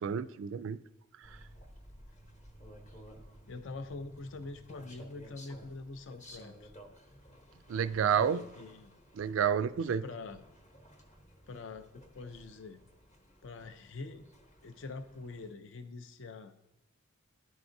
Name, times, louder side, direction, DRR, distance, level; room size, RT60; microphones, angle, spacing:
voice 1, 0.0-0.8 7.7-8.4 9.2-10.0, right 8 dB, 65° right, 15 dB, 0.3 m, -29 dB
sound 1, 1.2-15.5, equal, 35° left, 0.9 m, -55 dB
voice 2, 3.5-6.7 7.9-8.9 10.0-10.4 11.5-12.8 13.4-14.3 14.6-16.5, left 3 dB, 60° left, 9 dB, 0.5 m, -44 dB
12.0 x 4.7 x 2.6 m, 0.86 s
head